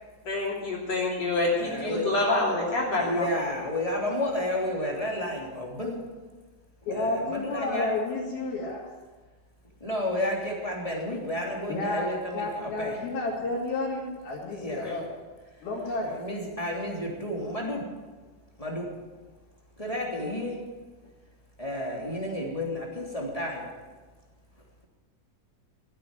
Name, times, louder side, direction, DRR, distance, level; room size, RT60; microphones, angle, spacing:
voice 1, 0.3-3.3, left 2 dB, 45° left, -4 dB, 4.0 m, -27 dB
voice 2, 1.6-2.1 3.0-6.0 6.9-7.9 9.8-13.0 14.5-15.0 16.2-17.8 18.6-18.9 19.8-20.6 21.6-23.6, left 1 dB, 10° left, -3 dB, 2.7 m, -31 dB
voice 3, 6.9-8.9 11.7-15.1 15.6-16.1, left 2 dB, 85° left, -8 dB, 4.4 m, -31 dB
15.5 x 9.0 x 9.1 m, 1.3 s
omnidirectional pair, 4.2 m